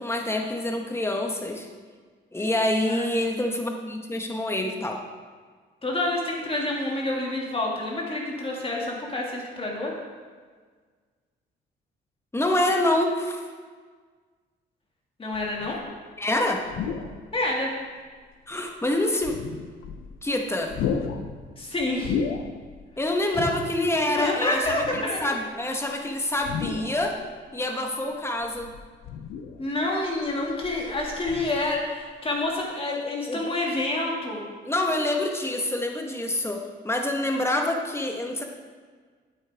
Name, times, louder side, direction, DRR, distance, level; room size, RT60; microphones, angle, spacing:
voice 1, 0.0-1.7 2.3-5.0 12.3-13.4 16.2-16.6 18.5-19.4 20.2-20.7 23.0-27.1 27.5-28.7 33.3-33.5 34.6-38.4, left 1 dB, 15° left, 2 dB, 1.2 m, -26 dB
voice 2, 5.8-9.9 15.2-15.8 17.3-17.7 21.6-22.2 23.3-23.5 24.2-25.3 29.6-34.4, left 2 dB, 30° left, -2 dB, 2.2 m, -28 dB
sound 1, 15.3-16.0 16.6-17.4 18.0-18.1 19.1-20.3 20.6-22.9 23.2-23.3 24.5-25.4 26.4-27.3 28.4-29.7 30.2-31.9 32.3-32.5, left 6 dB, 80° left, 0.7 m, -34 dB
8.9 x 8.5 x 3.5 m, 1.6 s
cardioid pair, 90°, 20 cm